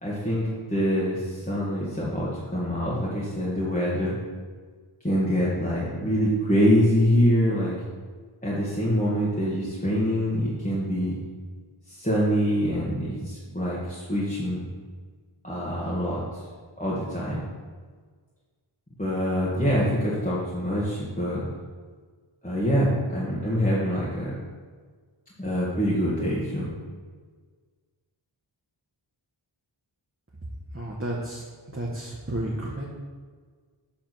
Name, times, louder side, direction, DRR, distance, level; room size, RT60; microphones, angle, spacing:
voice 1, 0.0-4.1 5.0-7.7 8.4-11.1 11.9-14.6 15.4-16.2 16.8-17.4 19.0-21.5 22.4-24.3 25.4-26.7, equal, 15° left, -8 dB, 1.6 m, -25 dB
voice 2, 30.7-31.4 31.7-32.8, right 1 dB, 25° right, -4 dB, 1.2 m, -31 dB
7.2 x 3.6 x 6.0 m, 1.5 s
wide cardioid pair, 50°, 48 cm